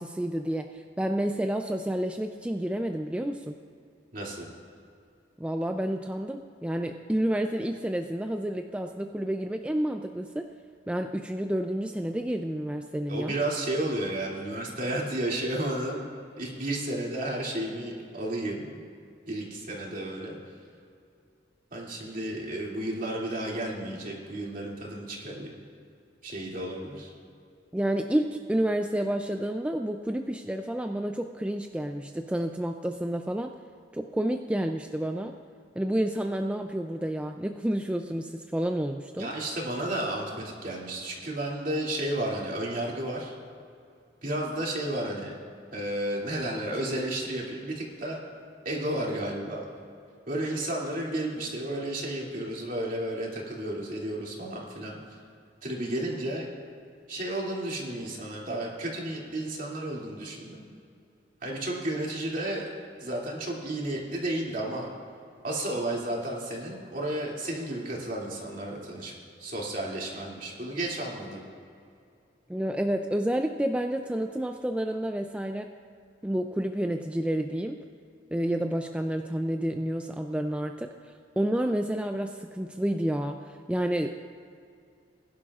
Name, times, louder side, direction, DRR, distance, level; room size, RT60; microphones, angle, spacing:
voice 1, 0.0-3.6 5.4-10.5 10.9-13.3 27.7-33.5 33.9-35.3 35.8-39.3 72.5-75.7 76.2-77.8 78.3-84.1, right 1 dB, 5° right, 5 dB, 0.4 m, -30 dB
voice 2, 4.1-4.5 13.1-16.1 16.4-18.8 19.3-20.3 21.7-25.6 26.2-27.1 39.2-43.4 44.2-45.3 45.7-48.2 48.6-49.6 50.3-55.2 55.6-56.5 57.1-60.7 61.4-62.7 63.0-64.9 65.4-69.1 69.4-71.4, right 1 dB, 50° right, -3 dB, 2.6 m, -32 dB
21.0 x 11.0 x 2.4 m, 2.4 s
head